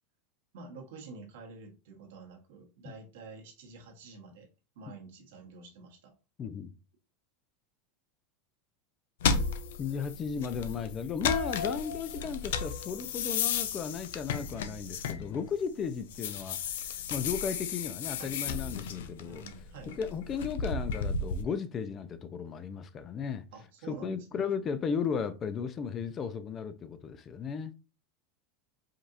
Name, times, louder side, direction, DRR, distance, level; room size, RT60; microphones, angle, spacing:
voice 1, 0.5-4.5 4.7-6.1 18.2-18.4 19.2-20.0 23.5-24.5, right 4 dB, 75° right, 1.5 m, -48 dB
voice 2, 6.4-6.7 9.8-19.4 19.9-23.5 23.9-27.7, left 6 dB, 30° left, 0.5 m, -35 dB
sound 1, 9.2-15.6 16.0-21.4, left 6 dB, 80° left, 0.5 m, -34 dB
5.1 x 2.7 x 2.6 m
supercardioid pair, 110°, 0 cm